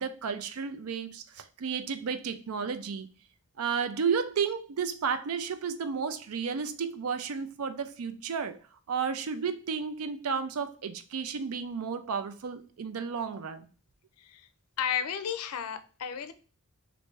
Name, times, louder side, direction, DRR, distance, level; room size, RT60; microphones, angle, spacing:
voice 1, 0.0-3.1 3.6-8.5 8.9-13.7, right 6 dB, 75° right, 0.4 m, -32 dB
voice 2, 14.2-14.5 14.8-16.3, left 8 dB, 80° left, 0.4 m, -33 dB
3.1 x 2.6 x 3.3 m
head